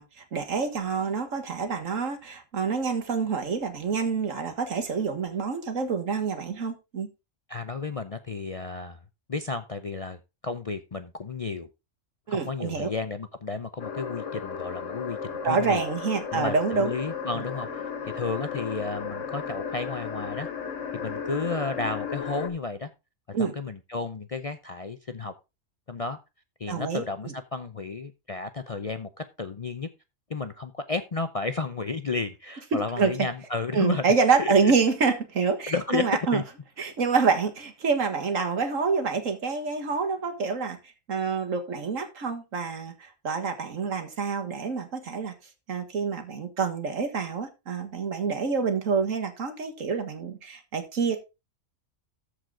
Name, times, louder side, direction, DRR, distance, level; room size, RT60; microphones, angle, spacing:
voice 1, 0.0-7.1 12.3-12.9 15.4-16.9 23.3-23.5 26.7-27.3 32.7-33.3 33.7-36.4 36.8-40.8 41.1-45.3 45.7-51.2, right 5 dB, 80° right, 2.0 m, -27 dB
voice 2, 7.5-9.0 9.3-11.7 12.3-15.8 16.3-20.5 20.9-22.9 23.4-25.3 25.9-26.2 26.6-29.9 30.3-34.0 34.4-34.7 35.7-36.1 36.3-36.4, left 4 dB, 40° left, 0.5 m, -32 dB
sound 1, 13.8-22.5, left 6 dB, 70° left, 1.8 m, -35 dB
14.0 x 4.9 x 3.7 m
omnidirectional pair, 1.3 m